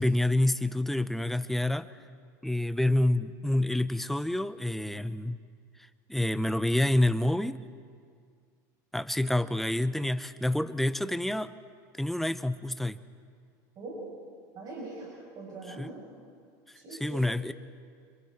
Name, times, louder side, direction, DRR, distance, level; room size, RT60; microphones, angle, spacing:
voice 1, 0.0-1.9 2.4-5.4 6.1-7.6 8.9-11.5 11.9-13.0 15.8-15.9 17.0-17.5, left 1 dB, ahead, 12 dB, 0.7 m, -27 dB
voice 2, 14.5-16.1 16.7-17.3, right 3 dB, 40° right, -4 dB, 7.3 m, -42 dB
29.5 x 27.0 x 4.4 m, 2.1 s
supercardioid pair, 125°, 10 cm